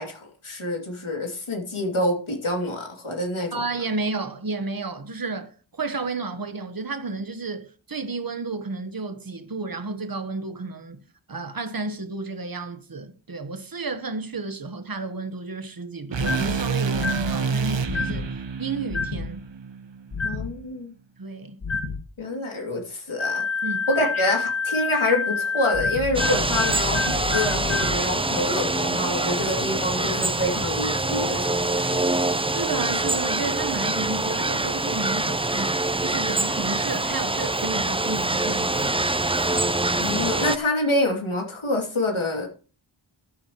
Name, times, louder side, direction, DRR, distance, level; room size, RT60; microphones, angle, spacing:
voice 1, 0.0-3.5 20.2-20.9 22.2-23.4 23.9-32.0 40.0-42.5, left 1 dB, 80° left, 2.9 m, -27 dB
voice 2, 3.5-11.0 11.3-18.3 18.6-19.4 21.2-21.6 23.6-23.8 32.5-39.0, right 3 dB, 45° right, 1.3 m, -32 dB
sound 1, 16.1-20.3, right 5 dB, 65° right, 1.0 m, -28 dB
sound 2, 16.2-16.6 16.9-17.3 17.9-18.2 18.9-19.3 20.1-20.5 21.6-22.0 23.2-28.0, left 4 dB, 65° left, 2.0 m, -27 dB
sound 3, 26.1-40.6, right 2 dB, 10° right, 0.5 m, -25 dB
13.5 x 8.8 x 3.1 m
wide cardioid pair, 45°, 48 cm